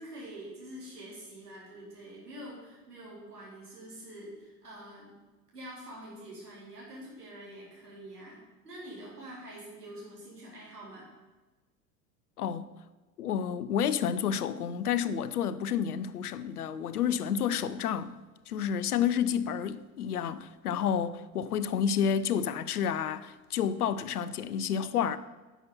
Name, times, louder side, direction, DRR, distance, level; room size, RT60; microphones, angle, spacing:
voice 1, 0.0-5.1 5.5-11.1 18.5-18.6, right 1 dB, 80° right, 3.7 m, -46 dB
voice 2, 13.2-18.2 18.5-25.2, left 8 dB, 75° left, 0.7 m, -30 dB
10.5 x 7.0 x 5.5 m
figure-of-eight pair, 80°, 46 cm